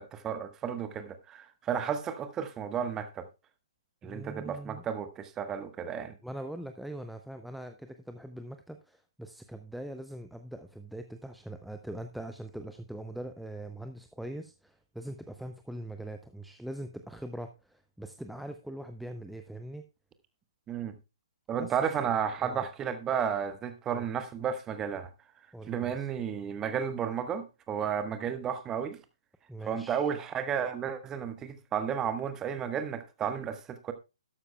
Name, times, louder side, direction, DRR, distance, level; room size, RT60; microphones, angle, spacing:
voice 1, 0.0-3.3 4.0-6.1 20.7-20.9 21.5-25.1 25.7-29.0 29.7-33.9, right 8 dB, 15° right, 1.1 m, -33 dB
voice 2, 4.0-4.8 6.2-19.8 21.5-22.1 22.4-22.6 23.9-24.1 25.5-26.1 29.5-30.2, right 1 dB, ahead, 0.5 m, -42 dB
12.5 x 12.0 x 2.2 m
figure-of-eight pair, 130°, 3 cm